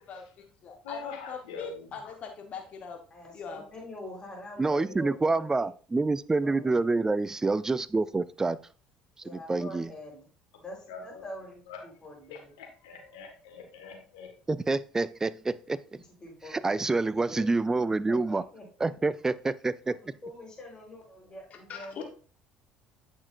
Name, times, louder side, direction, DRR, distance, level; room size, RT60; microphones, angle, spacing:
voice 1, 0.1-3.0 3.3-3.6 21.7-22.0, left 6 dB, 50° left, 3 dB, 1.4 m, -41 dB
voice 2, 0.8-2.1 10.9-11.2 11.7-11.8 12.3-14.3 22.0-22.1, left 5 dB, 85° left, 2 dB, 1.8 m, -44 dB
voice 3, 3.1-5.7 6.4-6.9 9.2-10.3 10.6-12.5 15.9-17.5 18.1-18.9 19.9-22.0, left 1 dB, 25° left, -1 dB, 4.2 m, -45 dB
voice 4, 4.6-8.6 9.3-9.9 14.5-15.8 16.5-18.4 18.8-20.0, right 3 dB, 20° right, 17 dB, 0.4 m, -27 dB
8.7 x 6.3 x 2.6 m, 0.39 s
hypercardioid pair, 70°, 3 cm